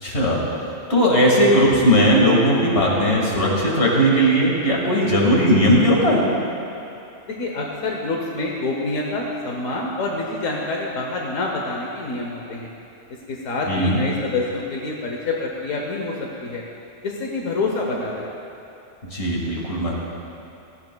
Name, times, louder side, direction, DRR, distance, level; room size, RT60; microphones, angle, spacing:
voice 1, 0.0-0.4 0.9-6.2 13.7-14.0 19.1-19.9, equal, 60° left, -3 dB, 2.3 m, -18 dB
voice 2, 7.3-12.7 13.3-16.6 17.0-18.3, left 2 dB, 90° left, -1 dB, 1.4 m, -27 dB
17.0 x 13.5 x 2.3 m, 2.8 s
omnidirectional pair, 1.3 m